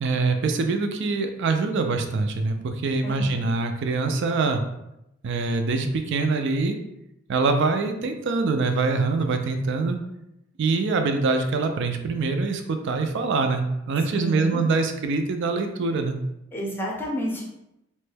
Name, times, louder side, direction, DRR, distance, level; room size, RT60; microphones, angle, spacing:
voice 1, 0.0-4.6 5.2-6.8 7.3-10.0 10.6-16.2, right 3 dB, 60° right, 6 dB, 0.4 m, -24 dB
voice 2, 3.0-3.5 14.2-14.6 16.5-17.4, equal, 10° left, -2 dB, 0.6 m, -30 dB
3.0 x 2.2 x 3.2 m, 0.86 s
head